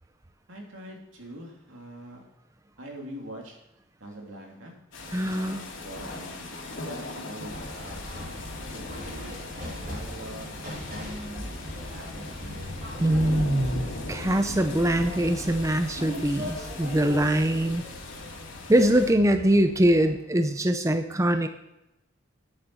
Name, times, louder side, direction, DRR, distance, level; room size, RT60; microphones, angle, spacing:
voice 1, 0.5-2.2 2.8-3.6 4.0-8.0 8.7-10.6 10.9-12.8, right 1 dB, 90° right, 0 dB, 3.1 m, -43 dB
sound 1, 4.9-19.1, left 2 dB, 85° left, 2.5 m, -40 dB
voice 2, 5.1-5.6 13.0-17.8 18.7-21.5, right 1 dB, 15° right, 7 dB, 0.6 m, -23 dB
sound 2, 7.4-20.1, left 1 dB, 50° right, 5.5 m, -39 dB
10.0 x 9.1 x 6.2 m, 0.90 s
head